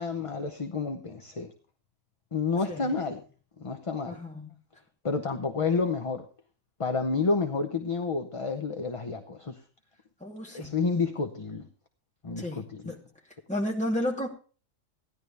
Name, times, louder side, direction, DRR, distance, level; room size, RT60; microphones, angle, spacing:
voice 1, 0.0-1.5 2.3-3.2 3.6-4.2 5.0-6.2 6.8-9.6 10.5-11.7 12.2-12.9, left 4 dB, 30° left, 0.8 m, -30 dB
voice 2, 4.1-4.5 10.2-10.8 12.4-13.0 13.5-14.3, left 1 dB, 5° left, 2.4 m, -32 dB
16.0 x 11.0 x 3.4 m
omnidirectional pair, 1.4 m